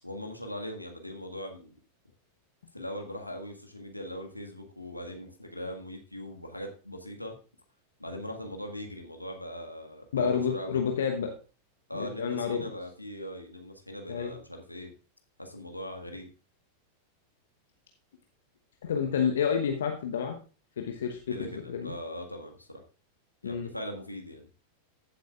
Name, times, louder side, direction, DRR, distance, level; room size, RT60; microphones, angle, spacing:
voice 1, 0.0-1.8 2.7-7.4 8.0-10.8 11.9-14.9 15.4-16.3 21.3-22.8 23.4-24.5, equal, 85° left, 3 dB, 1.6 m, -40 dB
voice 2, 10.1-11.3 11.9-12.7 14.1-14.3 18.8-20.4 20.8-21.9 23.4-23.7, left 7 dB, 65° left, 4 dB, 1.0 m, -29 dB
15.0 x 7.9 x 2.4 m, 0.34 s
figure-of-eight pair, 90°, 0 cm